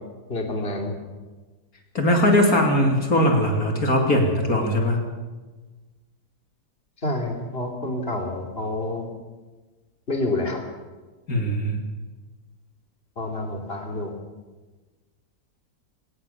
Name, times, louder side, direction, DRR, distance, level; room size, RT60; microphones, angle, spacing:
voice 1, 0.3-1.0 7.0-9.1 10.1-10.6 13.2-14.1, left 2 dB, 35° left, 2 dB, 3.2 m, -28 dB
voice 2, 1.9-5.0 11.3-11.8, left 1 dB, 65° left, 2 dB, 3.4 m, -20 dB
22.0 x 18.5 x 7.2 m, 1.3 s
omnidirectional pair, 1.7 m